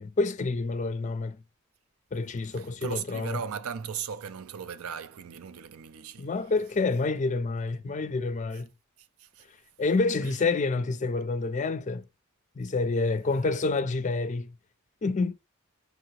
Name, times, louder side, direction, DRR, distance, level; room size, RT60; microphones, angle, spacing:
voice 1, 0.0-1.4 2.1-3.4 6.2-8.7 9.8-12.0 12.6-14.5 15.0-15.3, left 3 dB, 35° left, 0.4 m, -28 dB
voice 2, 2.5-6.3 9.0-9.5 10.2-10.4, right 7 dB, 80° right, 0.4 m, -38 dB
4.6 x 2.8 x 3.0 m
head